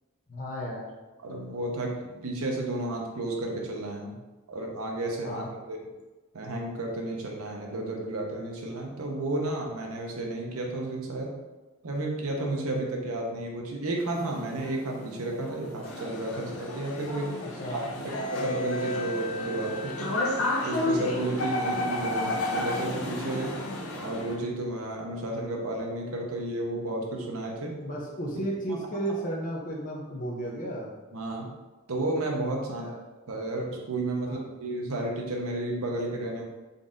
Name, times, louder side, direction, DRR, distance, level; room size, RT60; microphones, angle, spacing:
voice 1, 0.3-0.9 5.2-5.5 17.4-17.8 27.8-30.9 32.7-32.9 34.2-34.4, right 1 dB, 40° left, -3 dB, 0.6 m, -34 dB
voice 2, 1.2-4.2 4.5-5.8 6.3-11.3 11.8-17.3 17.7-20.1 20.6-23.5 24.0-27.8 31.1-31.5 31.9-32.9 33.3-36.4, right 2 dB, 85° right, 0 dB, 0.8 m, -32 dB
sound 1, 14.0-24.4, left 1 dB, 80° left, 0.8 m, -32 dB
4.0 x 2.5 x 3.6 m, 1.2 s
head